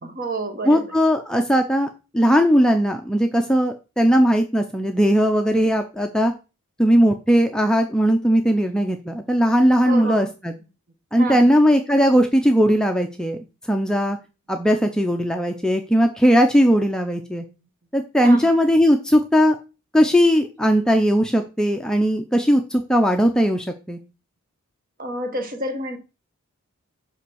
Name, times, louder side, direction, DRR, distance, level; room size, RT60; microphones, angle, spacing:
voice 1, 0.0-0.8 9.8-10.3 11.2-11.5 18.2-18.5 25.0-26.0, right 1 dB, 40° right, 1.1 m, -29 dB
voice 2, 0.6-1.9 2.1-6.3 6.8-10.5 11.1-13.4 13.7-14.2 14.5-17.4 17.9-19.6 19.9-24.0, equal, 5° left, 0.5 m, -18 dB
5.6 x 5.0 x 6.2 m
head